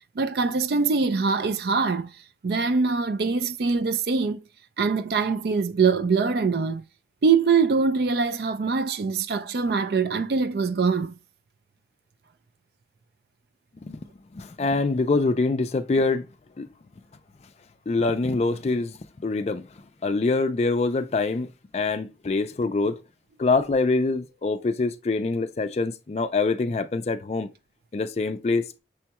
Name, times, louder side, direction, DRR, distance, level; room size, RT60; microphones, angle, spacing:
voice 1, 0.2-2.1 2.4-4.4 4.8-6.8 7.2-11.1, right 5 dB, 60° right, 0.4 m, -23 dB
voice 2, 14.3-16.3 16.6-16.7 17.9-19.7 20.0-21.5 21.7-23.0 23.4-27.5 27.9-28.8, left 3 dB, 35° left, 0.3 m, -25 dB
6.2 x 2.2 x 2.9 m
head